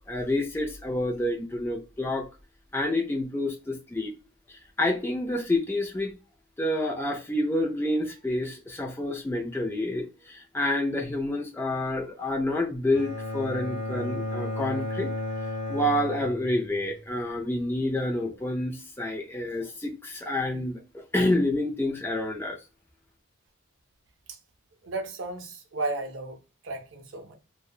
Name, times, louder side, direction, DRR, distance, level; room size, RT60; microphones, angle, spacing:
voice 1, 0.0-2.3 2.7-4.1 4.5-6.1 6.6-15.1 15.7-22.6, left 1 dB, 10° left, 0.3 m, -28 dB
Bowed string instrument, 12.9-17.0, left 2 dB, 10° right, 1.1 m, -33 dB
voice 2, 24.8-27.3, right 2 dB, 65° right, 0.5 m, -34 dB
2.7 x 2.1 x 2.3 m
head